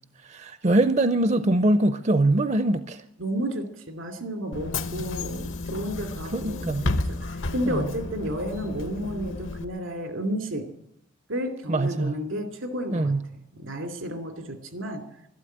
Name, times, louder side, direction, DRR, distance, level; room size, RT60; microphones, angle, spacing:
voice 1, 0.2-3.0 6.3-6.9 7.6-7.9 11.7-12.2 12.9-13.2, right 1 dB, 35° right, 12 dB, 0.5 m, -23 dB
voice 2, 3.2-10.7 11.3-15.0, equal, 85° right, 5 dB, 2.6 m, -32 dB
Bus / Engine, 4.5-9.6, left 2 dB, 75° left, 1.0 m, -32 dB
12.5 x 12.5 x 9.2 m, 0.79 s
head